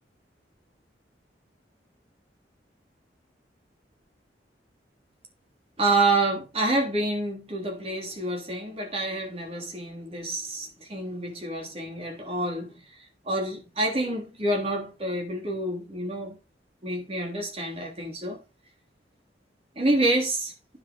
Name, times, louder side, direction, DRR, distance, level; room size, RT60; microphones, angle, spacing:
voice 1, 5.8-12.8 13.2-16.3 16.8-18.4 19.7-20.5, right 2 dB, 35° right, 3.4 m, -28 dB
9.9 x 6.2 x 5.3 m
head